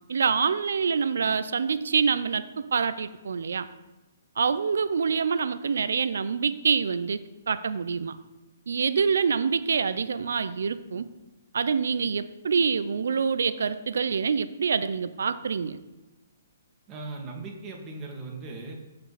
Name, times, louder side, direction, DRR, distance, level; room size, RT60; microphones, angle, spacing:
voice 1, 0.1-3.7 4.4-8.2 8.7-11.1 11.5-15.8, right 5 dB, 70° right, 13 dB, 0.7 m, -26 dB
voice 2, 16.9-18.7, right 3 dB, 25° right, 0 dB, 2.5 m, -38 dB
15.5 x 5.4 x 4.3 m, 1.1 s
hypercardioid pair, 135°, 0 cm